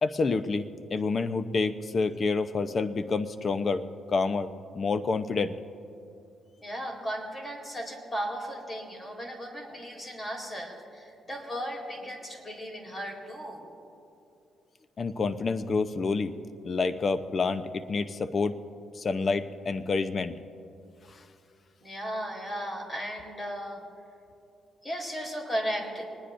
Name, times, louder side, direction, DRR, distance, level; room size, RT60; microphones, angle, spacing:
voice 1, 0.0-5.5 15.0-16.3 16.6-18.6 18.9-20.3 21.1-21.2, left 4 dB, 40° left, 11 dB, 0.8 m, -28 dB
voice 2, 6.6-13.7 21.8-23.8 24.8-26.0, equal, 25° left, 1 dB, 3.9 m, -36 dB
25.0 x 20.0 x 2.6 m, 2.6 s
cardioid pair, 90°, 0 cm